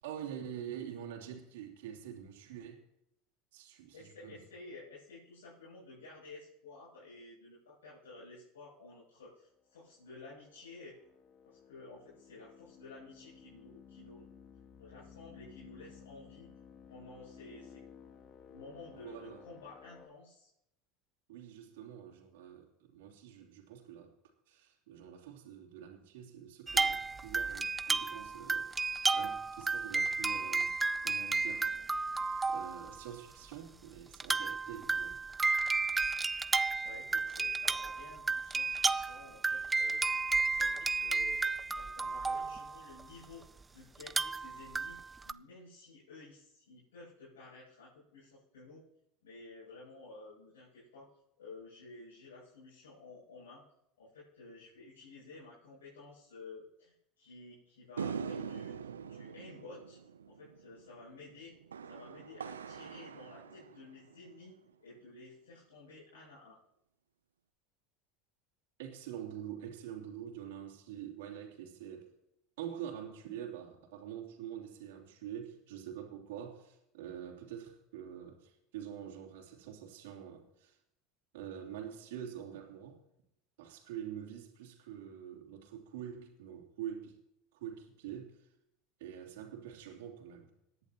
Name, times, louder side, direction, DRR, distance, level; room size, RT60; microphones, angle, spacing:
voice 1, 0.0-2.8 3.5-4.4 19.0-19.4 21.3-24.1 24.5-31.7 32.5-35.2 40.8-40.9 68.8-72.1 72.6-80.8 81.3-83.0 83.6-87.2 87.5-88.5 89.0-90.5, right 9 dB, 70° right, 0 dB, 3.0 m, -46 dB
voice 2, 3.9-11.0 11.4-14.3 14.8-16.5 16.9-17.8 18.5-20.5 36.8-41.4 41.7-45.0 45.2-48.8 49.2-53.6 54.0-61.6 61.9-64.5 64.8-66.6, left 3 dB, 80° left, -10 dB, 7.4 m, -53 dB
sound 1, 10.0-20.1, left 7 dB, 40° left, 1.9 m, -56 dB
sound 2, 26.7-33.0 33.5-33.6 34.1-43.2 44.0-45.3, right 3 dB, 15° right, 0.4 m, -32 dB
sound 3, 58.0-64.5, right 6 dB, 85° right, 0.6 m, -43 dB
27.0 x 11.0 x 3.0 m, 0.80 s
hypercardioid pair, 80°, 0 cm